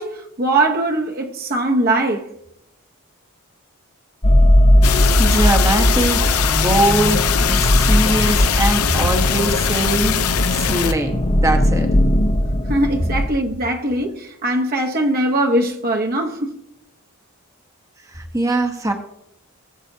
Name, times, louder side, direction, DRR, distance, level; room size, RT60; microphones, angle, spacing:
voice 1, 0.0-2.3 12.7-16.6, right 1 dB, 40° right, 1.0 m, -21 dB
sound 1, 4.2-13.3, left 1 dB, 30° left, 0.8 m, -18 dB
sound 2, 4.8-10.9, left 8 dB, 85° left, 0.7 m, -21 dB
voice 2, 5.2-10.1 10.5-11.9 18.1-18.9, right 1 dB, 15° right, 0.9 m, -21 dB
19.5 x 7.8 x 2.7 m
head